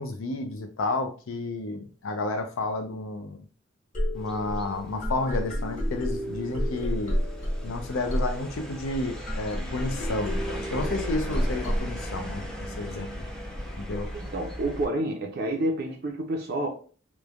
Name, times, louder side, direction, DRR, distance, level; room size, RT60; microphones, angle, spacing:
voice 1, 0.0-3.4 4.1-7.2 7.6-12.5 12.8-13.3 13.8-14.1, left 2 dB, 85° left, 0.5 m, -31 dB
sound 1, 3.9-11.8, equal, 40° left, 0.9 m, -30 dB
sound 2, 4.2-14.9, equal, 5° left, 0.5 m, -38 dB
voice 2, 14.1-16.7, right 1 dB, 50° right, 0.5 m, -29 dB
3.1 x 2.1 x 2.4 m
head